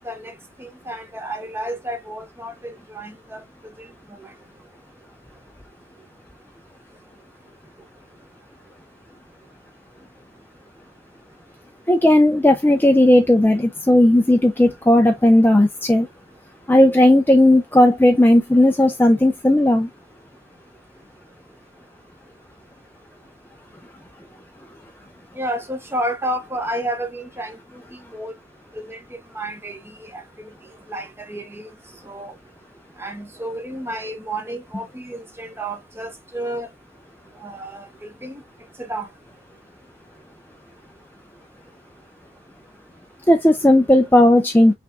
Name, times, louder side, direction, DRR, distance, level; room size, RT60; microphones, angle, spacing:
voice 1, 0.0-3.4 25.4-27.8 28.1-28.3 28.7-29.0 29.3-30.2 30.9-31.7 32.0-32.3 33.0-36.7 37.4-38.4 38.9-39.1, right 1 dB, 10° right, 0.8 m, -31 dB
voice 2, 11.9-16.1 16.7-19.9 43.3-44.7, left 1 dB, 10° left, 0.5 m, -15 dB
6.0 x 3.5 x 2.5 m
head